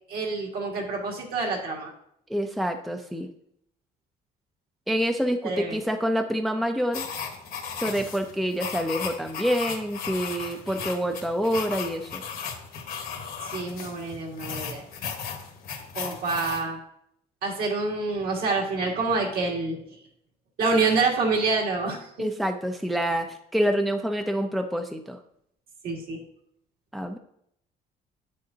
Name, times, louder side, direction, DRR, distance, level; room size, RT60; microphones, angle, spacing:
voice 1, 0.1-1.9 5.4-5.8 13.4-14.8 15.9-16.8 17.4-19.8 20.6-22.3 25.8-26.2, right 3 dB, 60° right, -1 dB, 2.0 m, -27 dB
voice 2, 2.3-3.3 4.9-7.0 7.8-12.2 22.2-25.2 26.9-27.2, equal, ahead, 5 dB, 0.5 m, -27 dB
sound 1, 6.9-16.6, left 6 dB, 60° left, 1.4 m, -36 dB
8.0 x 6.5 x 2.8 m, 0.72 s
cardioid pair, 110°, 17 cm